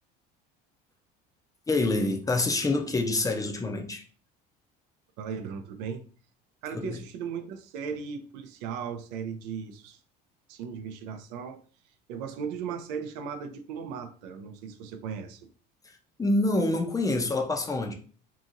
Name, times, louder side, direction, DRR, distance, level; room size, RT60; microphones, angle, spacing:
voice 1, 1.7-4.0 6.7-7.0 15.8-17.9, left 2 dB, 15° left, 0.5 m, -27 dB
voice 2, 5.2-6.0 6.6-10.0 10.5-11.6 12.1-15.5, right 6 dB, 85° right, 0.5 m, -37 dB
2.8 x 2.6 x 2.5 m
supercardioid pair, 95°, 21 cm